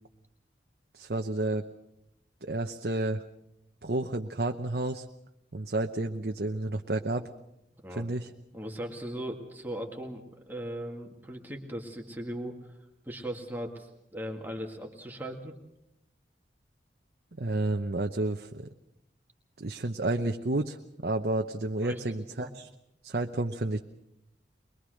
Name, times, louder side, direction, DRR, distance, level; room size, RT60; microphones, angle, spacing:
voice 1, 0.9-1.6 2.4-3.2 3.8-5.1 5.5-7.3 8.0-8.3 17.3-18.7 19.6-20.8 21.0-22.7 23.0-23.8, right 2 dB, 60° right, 4 dB, 0.9 m, -30 dB
voice 2, 8.5-12.7 13.0-15.5 21.8-22.0 22.3-22.5, right 1 dB, 10° right, 1 dB, 2.0 m, -38 dB
23.0 x 22.0 x 6.4 m, 0.85 s
head